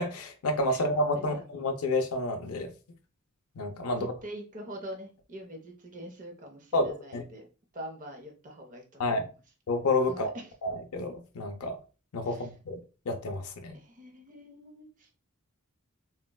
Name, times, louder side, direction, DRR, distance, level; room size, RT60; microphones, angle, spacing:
voice 1, 0.0-2.7 3.6-4.1 6.7-7.2 9.0-9.3 9.7-10.3 10.6-11.8 12.1-12.8 13.1-13.7, left 2 dB, 75° left, 0.4 m, -29 dB
voice 2, 3.9-7.5 7.7-9.2 10.1-10.5 12.2-12.5 13.7-15.2, equal, 35° right, 0.6 m, -44 dB
3.8 x 2.1 x 2.2 m
head